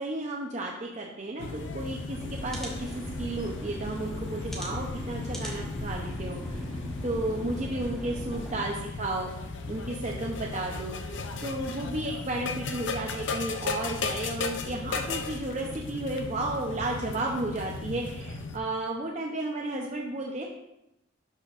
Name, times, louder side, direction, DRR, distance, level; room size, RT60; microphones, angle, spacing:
voice 1, 0.0-6.6 7.0-9.3 9.7-20.4, right 2 dB, 35° right, -1 dB, 0.7 m, -33 dB
sound 1, 1.4-18.6, left 3 dB, 70° left, 0.6 m, -36 dB
sound 2, 2.2-8.6, equal, ahead, 1.3 m, -39 dB
12.0 x 5.4 x 2.5 m, 0.85 s
head